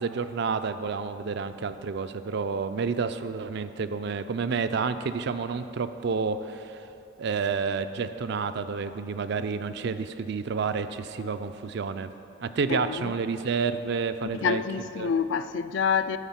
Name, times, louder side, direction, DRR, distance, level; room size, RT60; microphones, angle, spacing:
voice 1, 0.0-6.8 7.2-12.1 12.4-14.6 15.0-15.1, right 5 dB, 55° right, 0.4 m, -29 dB
voice 2, 12.7-13.1 14.3-16.2, left 6 dB, 60° left, 0.3 m, -27 dB
12.5 x 5.4 x 5.8 m
head